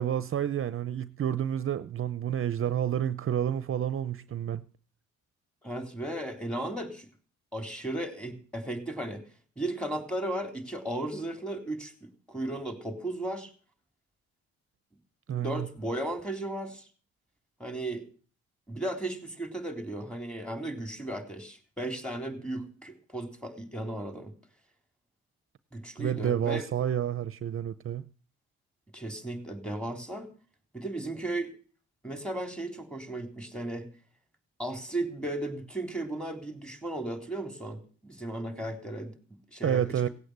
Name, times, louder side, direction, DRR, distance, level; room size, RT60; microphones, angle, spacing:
voice 1, 0.0-4.6 15.3-15.7 26.0-28.1 39.6-40.1, right 10 dB, 45° right, 0.7 m, -29 dB
voice 2, 5.6-7.1 7.5-9.2 9.6-13.5 15.3-16.9 17.6-18.1 18.7-24.3 25.7-26.6 28.9-30.3 30.7-31.5 32.0-33.9 34.6-40.0, right 1 dB, 5° left, 3.6 m, -35 dB
17.5 x 8.4 x 8.0 m
cardioid pair, 90°, 30 cm